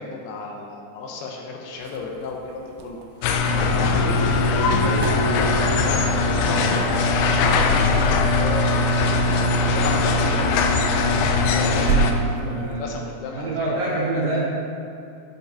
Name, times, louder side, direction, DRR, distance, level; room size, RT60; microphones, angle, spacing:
voice 1, 0.0-3.0 3.5-4.4 4.7-13.5 13.8-14.4, left 4 dB, 75° left, 0 dB, 2.6 m, -33 dB
sound 1, 1.8-12.9, right 6 dB, 85° right, 3.0 m, -34 dB
sound 2, 3.2-12.1, left 3 dB, 90° left, 2.2 m, -20 dB
voice 2, 12.0-13.0 13.3-14.4, right 2 dB, 70° right, -9 dB, 4.5 m, -27 dB
12.5 x 5.1 x 4.7 m, 2.6 s
omnidirectional pair, 5.2 m